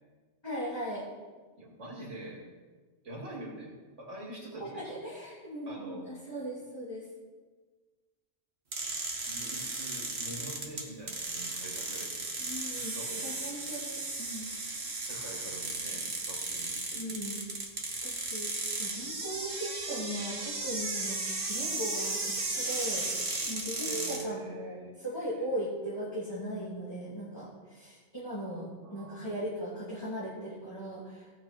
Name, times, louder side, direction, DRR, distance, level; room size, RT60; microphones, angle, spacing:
voice 1, 0.4-1.1 4.6-7.1 12.4-12.9 13.2-14.5 16.9-17.4 18.0-23.1 23.4-31.3, equal, 20° left, -9 dB, 3.0 m, -38 dB
voice 2, 1.6-2.5 3.0-5.1 5.6-6.1 9.3-12.3 12.7-13.3 15.0-17.2 23.8-25.6 28.8-29.4, right 2 dB, 80° right, -2 dB, 3.1 m, -44 dB
sound 1, 8.7-24.2, right 3 dB, 60° right, 1.8 m, -35 dB
17.5 x 7.6 x 4.5 m, 1.4 s
omnidirectional pair, 1.2 m